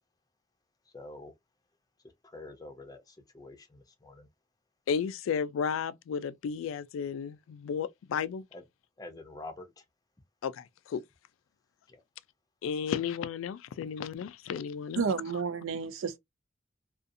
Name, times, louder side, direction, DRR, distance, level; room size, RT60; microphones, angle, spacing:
voice 1, 0.8-1.3 2.0-4.3 8.5-8.6 9.0-9.9 11.9-12.0, left 2 dB, 20° left, 0.5 m, -47 dB
voice 2, 4.9-8.4 10.4-11.0 12.6-15.0, left 7 dB, 85° left, 0.3 m, -33 dB
voice 3, 15.0-16.2, right 5 dB, 80° right, 0.5 m, -31 dB
2.5 x 2.4 x 2.5 m
head